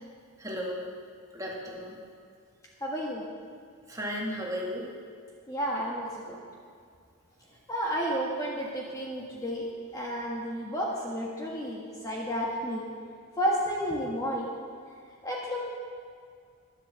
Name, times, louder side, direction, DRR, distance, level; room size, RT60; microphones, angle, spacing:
voice 1, 0.4-0.8 1.3-2.0 3.9-4.9, equal, 15° right, -3 dB, 2.1 m, -34 dB
voice 2, 2.8-3.2 5.5-6.4 7.7-12.9 13.4-14.5 15.2-15.6, equal, 15° left, -4 dB, 1.5 m, -31 dB
11.0 x 11.0 x 6.9 m, 2.2 s
head